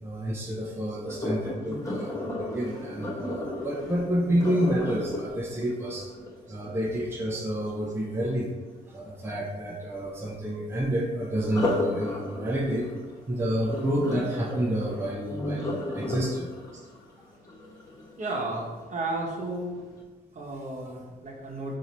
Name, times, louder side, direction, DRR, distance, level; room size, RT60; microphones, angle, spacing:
voice 1, 0.0-6.1 6.5-8.5 8.9-12.9 13.3-16.5 20.8-21.0, right 1 dB, 15° right, -4 dB, 0.6 m, -29 dB
Sink (filling or washing), 1.1-7.0 11.4-18.4 19.0-19.3 19.8-19.9, left 1 dB, 20° left, 1.1 m, -34 dB
voice 2, 18.2-19.8 20.3-21.8, right 2 dB, 45° right, -2 dB, 1.0 m, -33 dB
3.9 x 2.7 x 3.0 m, 1.3 s
supercardioid pair, 60°, 17 cm